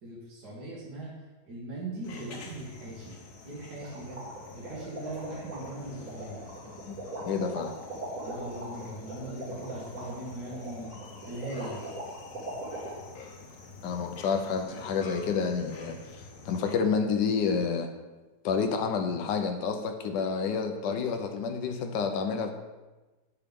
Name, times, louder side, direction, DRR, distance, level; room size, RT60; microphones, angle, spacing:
voice 1, 0.0-1.2 1.5-3.1 3.4-4.2 4.5-6.4 8.2-10.9 11.2-11.9, right 1 dB, 70° right, -6 dB, 2.1 m, -40 dB
sound 1, 2.0-16.8, left 3 dB, 65° left, 1.4 m, -48 dB
sound 2, 3.8-12.9, right 2 dB, 50° right, 2.1 m, -40 dB
voice 2, 7.3-7.7 13.8-17.9 18.4-22.5, left 5 dB, 85° left, 5 dB, 1.3 m, -29 dB
8.4 x 5.9 x 3.5 m, 1.2 s
omnidirectional pair, 1.8 m